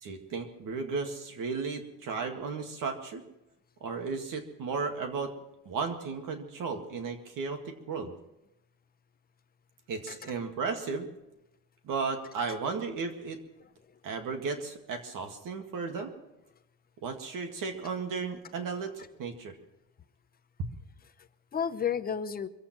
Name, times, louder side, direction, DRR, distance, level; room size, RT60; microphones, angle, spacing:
voice 1, 0.0-3.2 3.8-5.3 5.7-8.1 9.9-11.1 11.8-13.4 14.0-16.1 17.0-19.6, right 4 dB, 45° right, 5 dB, 2.1 m, -34 dB
voice 2, 13.6-14.0 21.2-22.5, left 7 dB, 20° left, 9 dB, 0.7 m, -34 dB
24.5 x 8.5 x 6.0 m, 0.92 s
cardioid pair, 140°, 44 cm